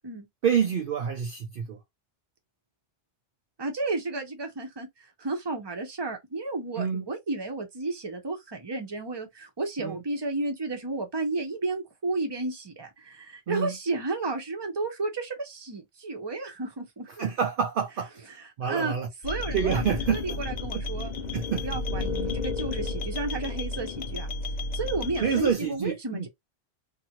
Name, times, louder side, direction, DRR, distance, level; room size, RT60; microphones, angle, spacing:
voice 1, 0.4-1.8 6.8-7.0 9.8-10.0 13.5-13.7 17.2-18.1 18.6-19.1 19.5-20.4 20.7-20.8 21.3-21.6 25.2-26.3, right 7 dB, 60° right, 0.6 m, -27 dB
voice 2, 3.6-4.9 5.2-17.1 18.3-19.0 19.2-21.1 21.5-24.3 24.7-26.3, right 3 dB, 25° right, 0.7 m, -32 dB
sound 1, 19.2-25.5, left 3 dB, 60° left, 0.4 m, -32 dB
2.7 x 2.6 x 2.8 m
omnidirectional pair, 1.2 m